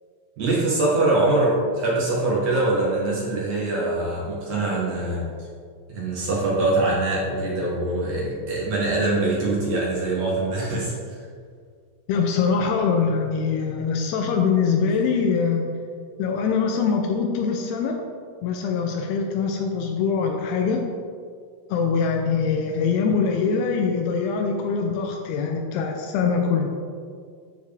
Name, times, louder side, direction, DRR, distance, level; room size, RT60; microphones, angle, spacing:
voice 1, 0.4-5.3 5.9-11.2, right 2 dB, 60° right, -6 dB, 2.2 m, -23 dB
voice 2, 12.1-15.7 16.2-18.0 18.4-20.8 21.7-26.7, left 5 dB, 85° left, 3 dB, 2.7 m, -23 dB
14.0 x 4.7 x 3.4 m, 2.1 s
omnidirectional pair, 4.5 m